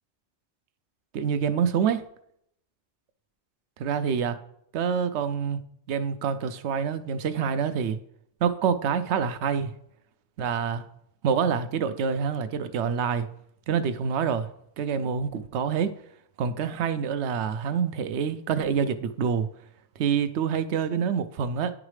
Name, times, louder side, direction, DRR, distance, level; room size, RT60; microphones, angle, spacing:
voice 1, 1.1-2.0 3.8-4.4 4.7-5.6 5.9-8.0 8.4-9.7 10.4-10.8 11.2-13.3 13.7-14.5 14.8-15.9 16.4-19.5 20.0-21.7, right 7 dB, 75° right, 0.8 m, -26 dB
10.5 x 4.9 x 3.2 m
omnidirectional pair, 1.2 m